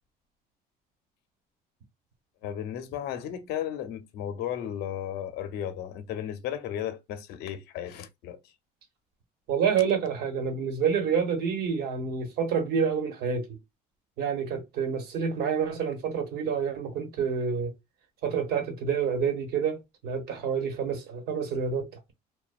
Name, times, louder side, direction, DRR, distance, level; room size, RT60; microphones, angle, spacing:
voice 1, 2.4-8.4, left 10 dB, 80° left, 0.5 m, -34 dB
voice 2, 9.5-13.6 14.2-17.7 18.2-22.1, right 6 dB, 75° right, 1.0 m, -28 dB
2.8 x 2.1 x 2.3 m
cardioid pair, 140°, 17 cm